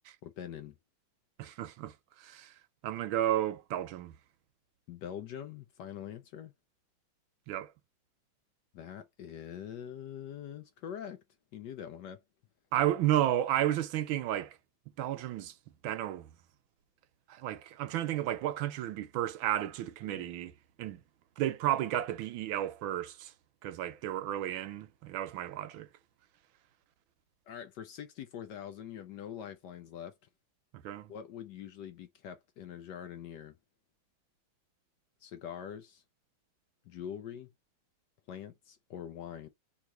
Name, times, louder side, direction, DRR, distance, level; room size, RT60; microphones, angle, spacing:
voice 1, 0.2-0.7 4.9-6.5 8.7-11.2 11.5-12.2 20.1-20.3 27.5-30.1 31.1-33.5 35.2-36.0 36.8-37.5 38.3-39.5, left 9 dB, 70° left, 1.0 m, -44 dB
voice 2, 1.4-2.5 2.8-4.2 7.5-7.7 12.7-14.6 15.0-15.5 15.8-16.3 17.3-21.0 21.4-23.3 23.6-25.9 30.7-31.1, right 12 dB, 80° right, 1.4 m, -32 dB
3.6 x 2.9 x 4.5 m
omnidirectional pair, 2.2 m